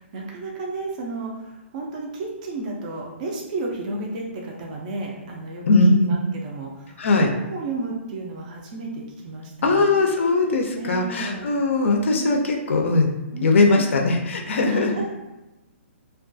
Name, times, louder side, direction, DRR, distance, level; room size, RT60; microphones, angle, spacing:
voice 1, 0.0-5.6 6.0-9.9 10.8-11.5 12.1-12.4 13.3-13.9 14.6-15.1, right 2 dB, 35° right, -1 dB, 0.4 m, -33 dB
voice 2, 5.7-6.2 7.0-7.3 9.6-13.1 13.4-14.9, left 2 dB, 70° left, 2 dB, 0.4 m, -19 dB
2.3 x 2.2 x 2.5 m, 1.0 s
hypercardioid pair, 160°, 7 cm